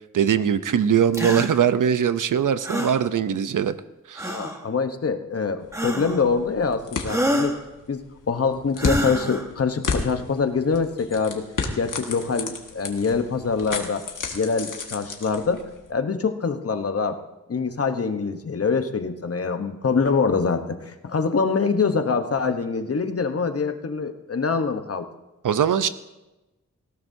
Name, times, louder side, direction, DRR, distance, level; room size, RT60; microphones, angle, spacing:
voice 1, 0.1-3.7 4.1-4.4 25.4-25.9, right 8 dB, 85° right, 13 dB, 0.7 m, -21 dB
sound 1, 1.1-1.5 2.6-3.0 4.2-4.6 5.7-6.3 7.1-7.6 8.8-9.4, equal, 10° right, 1.4 m, -26 dB
voice 2, 4.2-7.5 7.9-8.0 8.3-11.5 11.8-14.0 14.3-15.6 15.9-17.2 17.5-25.0, left 5 dB, 50° left, 7 dB, 1.0 m, -24 dB
sound 2, 5.6-15.9, left 4 dB, 85° left, 1.8 m, -33 dB
19.0 x 17.0 x 2.7 m, 1.0 s
wide cardioid pair, 120°, 31 cm